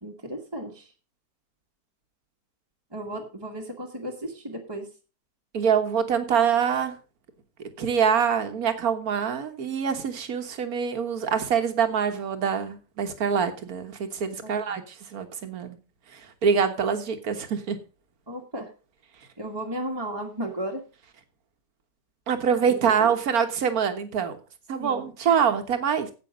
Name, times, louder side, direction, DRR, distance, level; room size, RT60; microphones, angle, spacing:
voice 1, 0.0-0.9 2.9-4.9 14.4-14.8 18.3-18.7 19.4-20.8 22.7-23.1 24.8-25.1, right 1 dB, 15° right, -1 dB, 1.5 m, -35 dB
voice 2, 5.5-6.9 7.8-15.8 16.1-17.8 22.3-24.4 24.7-26.1, right 7 dB, 60° right, 8 dB, 1.8 m, -25 dB
9.5 x 8.4 x 5.1 m, 0.33 s
omnidirectional pair, 1.8 m